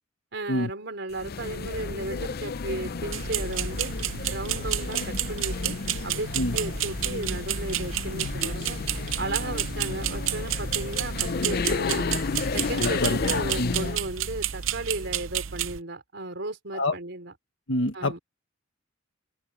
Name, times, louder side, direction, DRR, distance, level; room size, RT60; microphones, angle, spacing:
voice 1, 0.3-3.9 4.3-5.7 6.0-8.8 9.2-12.1 12.5-17.3 17.9-18.2, right 2 dB, 65° right, 4.4 m, -35 dB
sound 1, 1.1-14.1, left 4 dB, 50° left, 0.6 m, -32 dB
sound 2, 3.1-15.8, right 11 dB, 85° right, 0.7 m, -31 dB
voice 2, 12.8-13.7 16.7-16.9 17.7-18.2, left 1 dB, 70° left, 1.6 m, -27 dB
head